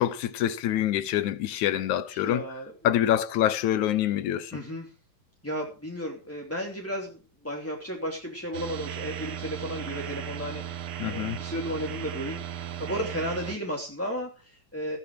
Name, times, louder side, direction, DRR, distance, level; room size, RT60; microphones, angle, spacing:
voice 1, 0.0-2.4 2.8-4.5 11.0-11.4, left 12 dB, 70° left, 2.2 m, -26 dB
voice 2, 2.1-2.7 4.5-4.9 5.4-15.0, equal, 5° left, 2.3 m, -34 dB
sound 1, 8.5-13.6, right 10 dB, 80° right, 1.2 m, -36 dB
17.0 x 11.0 x 4.9 m
omnidirectional pair, 3.8 m